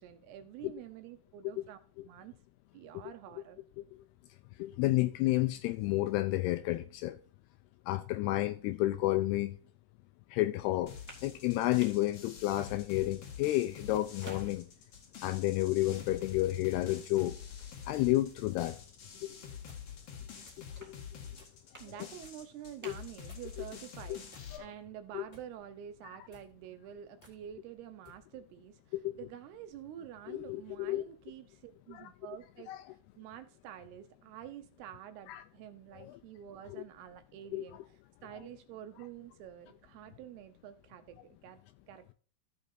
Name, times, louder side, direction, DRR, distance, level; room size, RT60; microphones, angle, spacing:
voice 1, 0.0-1.8 2.1-2.3 2.7-3.6 21.8-41.6 41.9-42.1, right 10 dB, 75° right, 2.5 m, -48 dB
voice 2, 4.6-7.2 7.9-9.6 10.3-10.9 11.2-14.7 15.2-17.4 17.9-18.8 22.8-22.9 24.1-24.2 24.5-24.6 25.1-25.2 28.9-29.2 30.3-31.0 31.9-32.1 32.7-32.8 35.3-35.4 36.0-36.2 37.5-37.6, left 17 dB, 80° left, 2.4 m, -31 dB
sound 1, 10.8-23.9, right 1 dB, 20° right, 0.4 m, -58 dB
sound 2, 10.9-24.6, left 7 dB, 60° left, 1.6 m, -47 dB
sound 3, 18.6-18.8 19.7-19.9 20.4-20.7 21.3-21.7 22.2-22.4 23.3-23.7 24.3-24.8 25.3-25.5 26.2-26.5 27.2-27.4 28.0-28.2, left 3 dB, 15° left, 1.6 m, -59 dB
15.0 x 6.6 x 2.7 m
omnidirectional pair, 5.1 m